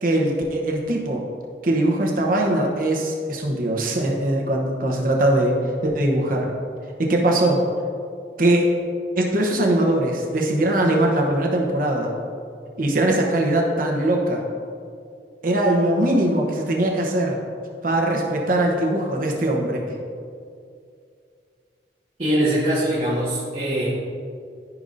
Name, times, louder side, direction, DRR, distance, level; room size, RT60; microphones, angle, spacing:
voice 1, 0.0-1.2 1.6-5.6 5.8-6.5 7.0-7.6 8.4-8.7 9.2-12.1 12.8-14.4 15.4-17.4 17.8-19.8, right 1 dB, 50° right, 0 dB, 0.9 m, -21 dB
voice 2, 22.2-23.9, right 1 dB, 35° right, -9 dB, 1.5 m, -22 dB
13.5 x 5.4 x 2.6 m, 2.4 s
head